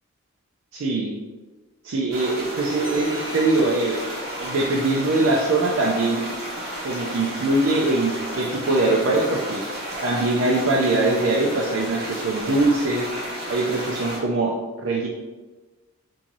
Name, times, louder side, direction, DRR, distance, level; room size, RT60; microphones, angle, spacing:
voice 1, 0.7-1.1 1.8-4.1 4.4-6.2 6.8-9.7 10.0-13.1 13.5-15.1, right 2 dB, 70° right, -2 dB, 0.5 m, -22 dB
sound 1, 2.1-14.2, equal, 45° right, 1.1 m, -32 dB
sound 2, 2.8-6.2, left 1 dB, 10° left, 0.9 m, -45 dB
3.8 x 2.7 x 3.0 m, 1.2 s
head